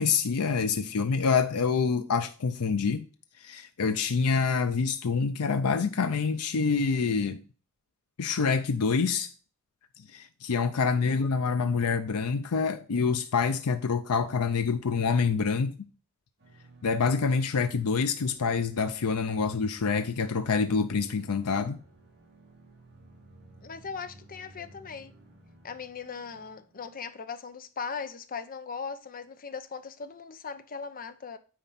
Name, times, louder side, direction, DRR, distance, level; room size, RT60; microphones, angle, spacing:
voice 1, 0.0-3.0 3.4-7.4 8.2-9.3 10.1-15.7 16.8-21.8, left 5 dB, 90° left, 0.6 m, -26 dB
voice 2, 10.8-11.3 23.6-25.1 25.6-31.4, left 5 dB, 40° left, 0.7 m, -39 dB
sound 1, 16.4-27.1, right 1 dB, 55° right, 2.5 m, -55 dB
9.3 x 4.3 x 4.1 m
head